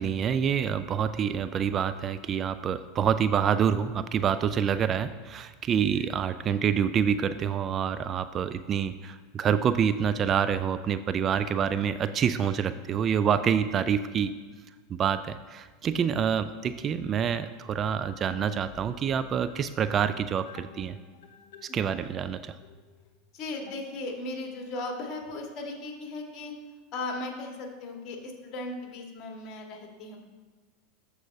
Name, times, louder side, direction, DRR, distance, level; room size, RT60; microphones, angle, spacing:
voice 1, 0.0-14.3 14.9-21.0 21.6-22.6, right 8 dB, 35° right, 12 dB, 0.3 m, -27 dB
sound 1, 18.3-24.4, left 6 dB, 65° left, 0.7 m, -52 dB
voice 2, 23.3-26.5 26.9-30.2, left 2 dB, 45° left, 2 dB, 1.6 m, -37 dB
13.5 x 4.8 x 2.7 m, 1.4 s
hypercardioid pair, 85°, 0 cm